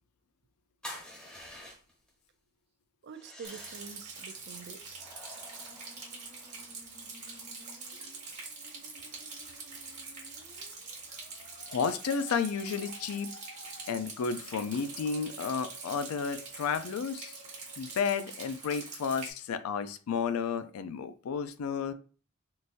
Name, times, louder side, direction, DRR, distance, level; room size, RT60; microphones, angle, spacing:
sound 1, 0.8-2.1 3.1-4.0 4.9-6.6, left 1 dB, 5° left, 1.0 m, -48 dB
voice 1, 3.0-5.1, right 6 dB, 50° right, 0.3 m, -47 dB
Rain, 3.4-19.3, right 4 dB, 35° right, 1.2 m, -45 dB
Musical instrument, 5.2-18.2, left 1 dB, 55° left, 0.8 m, -56 dB
voice 2, 11.7-13.3 13.9-17.4 17.8-21.9, left 6 dB, 80° left, 0.4 m, -32 dB
3.8 x 2.6 x 2.5 m
head